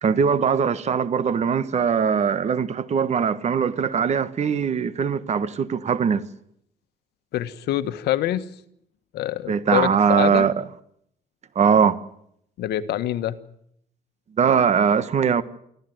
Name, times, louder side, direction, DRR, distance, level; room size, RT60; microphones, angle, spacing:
voice 1, 0.0-6.3 9.5-10.6 11.5-12.0 14.4-15.4, right 6 dB, 40° right, 1.4 m, -21 dB
voice 2, 7.3-8.5 9.1-10.5 12.6-13.4, left 13 dB, 75° left, 1.4 m, -25 dB
25.0 x 15.0 x 9.4 m
cardioid pair, 110°, 17 cm